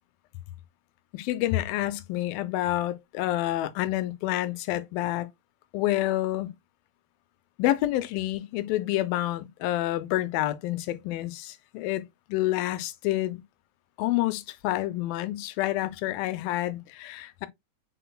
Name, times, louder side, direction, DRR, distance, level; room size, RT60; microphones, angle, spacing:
voice 1, 1.1-5.3 5.7-6.5 7.6-12.0 12.3-13.4 14.0-17.5, left 15 dB, 90° left, 2.4 m, -28 dB
5.7 x 3.8 x 2.2 m
omnidirectional pair, 4.1 m